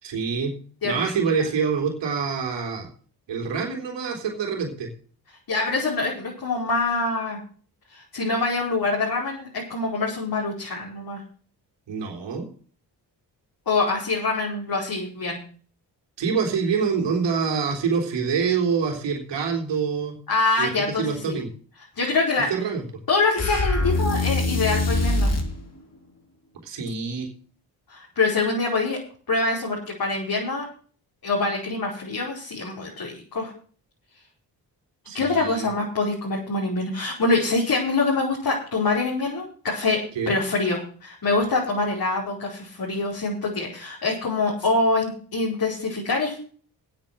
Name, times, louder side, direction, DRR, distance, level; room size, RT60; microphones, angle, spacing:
voice 1, 0.0-0.5 0.8-2.9 3.3-4.9 11.9-12.5 16.2-20.2 20.6-21.5 22.4-22.8 26.6-27.3 35.1-35.7 40.2-40.3, right 6 dB, 85° right, 1 dB, 3.7 m, -26 dB
voice 2, 0.8-1.1 5.5-7.4 7.9-11.2 13.7-15.4 20.3-21.4 21.9-22.5 23.1-25.3 27.9-29.0 29.3-30.7 31.2-33.5 35.1-40.0 40.3-46.4, left 3 dB, 55° left, -3 dB, 5.1 m, -25 dB
sound 1, 23.4-25.5, left 2 dB, 35° left, 3.6 m, -23 dB
9.5 x 8.8 x 7.8 m, 0.43 s
cardioid pair, 60°, 42 cm